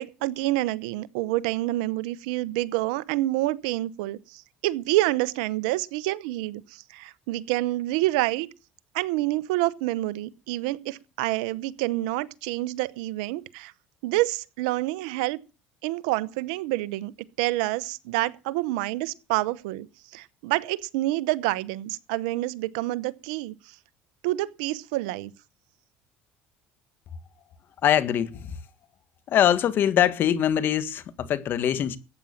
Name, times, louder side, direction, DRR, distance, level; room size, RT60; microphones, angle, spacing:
voice 1, 0.0-6.6 6.9-8.5 8.9-13.7 14.0-15.4 15.8-17.1 17.4-19.9 20.1-23.5 24.2-25.3, right 17 dB, 85° right, 0.9 m, -27 dB
voice 2, 27.8-28.5 29.3-32.0, left 10 dB, 55° left, 1.7 m, -23 dB
14.5 x 9.0 x 7.2 m
supercardioid pair, 95°, 4 cm